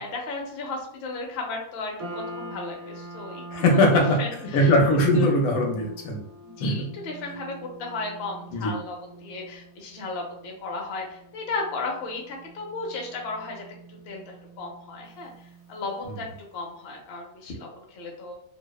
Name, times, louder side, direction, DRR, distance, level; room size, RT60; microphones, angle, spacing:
voice 1, 0.0-3.4 3.7-4.7 5.1-5.3 6.4-13.6 14.1-15.3 15.7-16.3 16.5-18.3, left 3 dB, 60° left, 1 dB, 0.7 m, -35 dB
sound 1, 2.0-16.4, right 2 dB, 75° right, 1.1 m, -44 dB
voice 2, 3.5-4.2 4.5-6.2 6.6-6.7 8.5-8.8, left 1 dB, 85° left, 1 dB, 1.1 m, -20 dB
2.7 x 2.0 x 2.3 m, 0.69 s
omnidirectional pair, 1.5 m